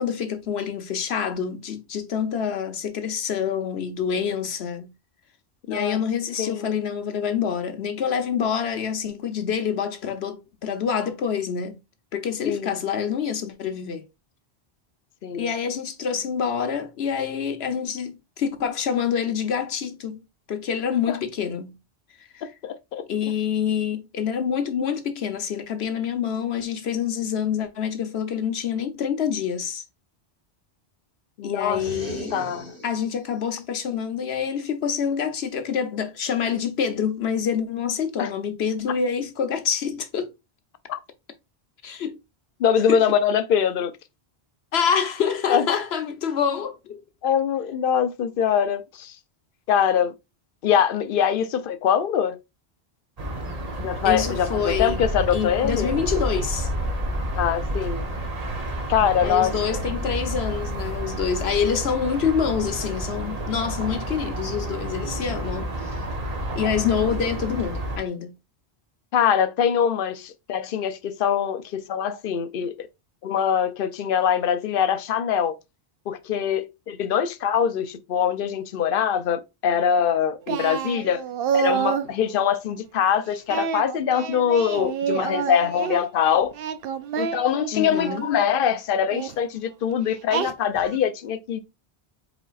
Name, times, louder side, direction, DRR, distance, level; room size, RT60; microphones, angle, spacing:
voice 1, 0.0-4.9 5.7-11.8 12.1-14.0 15.3-20.2 20.5-21.7 22.3-22.4 23.1-29.8 31.4-32.4 32.8-40.3 41.8-42.2 42.9-43.0 44.7-47.0 54.0-55.1 55.3-56.7 59.2-66.0 66.5-68.3 87.7-88.3, left 7 dB, 85° left, 1.1 m, -26 dB
voice 2, 5.7-6.0 6.4-6.7 12.4-12.8 15.2-15.5 21.1-21.2 22.6-23.0 31.4-31.8 32.3-32.7 38.2-38.3 40.9-41.0 42.6-43.9 45.5-45.6 47.2-49.2 49.7-50.1 50.6-52.4 53.8-55.9 57.4-58.0 58.9-59.5 69.1-72.9 73.2-75.6 76.1-81.2 81.5-86.5 87.2-91.6, left 8 dB, 65° left, 0.8 m, -23 dB
sound 1, 31.6-33.3, right 2 dB, 85° right, 2.3 m, -37 dB
Ambience Los Angeles River Plane, 53.2-68.0, right 1 dB, 40° right, 1.0 m, -30 dB
Singing, 80.5-82.1 83.5-86.0 86.5-88.3 89.1-89.4 90.3-91.0, right 7 dB, 70° right, 0.8 m, -28 dB
5.0 x 4.4 x 2.4 m
omnidirectional pair, 1.1 m